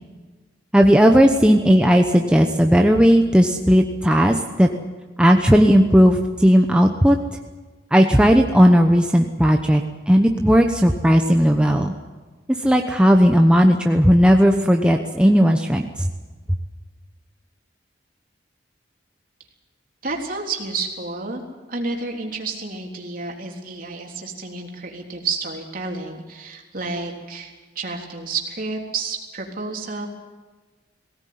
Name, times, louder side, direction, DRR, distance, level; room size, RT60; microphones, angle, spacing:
voice 1, 0.7-4.7 5.2-7.2 7.9-11.9 12.6-16.1, equal, 5° right, 3 dB, 0.9 m, -15 dB
voice 2, 20.0-21.4 21.7-30.1, right 3 dB, 50° right, 1 dB, 3.5 m, -30 dB
19.5 x 17.5 x 9.4 m, 1.3 s
head